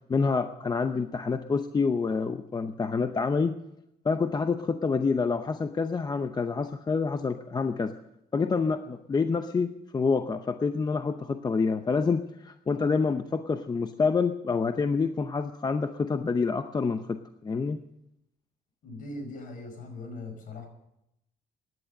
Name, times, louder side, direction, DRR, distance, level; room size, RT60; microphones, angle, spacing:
voice 1, 0.1-3.6 4.0-7.9 8.3-17.8, left 4 dB, 25° left, 8 dB, 0.8 m, -27 dB
voice 2, 18.8-20.7, left 2 dB, 55° left, 5 dB, 5.3 m, -40 dB
16.0 x 11.0 x 6.6 m, 0.82 s
cardioid pair, 110°, 17 cm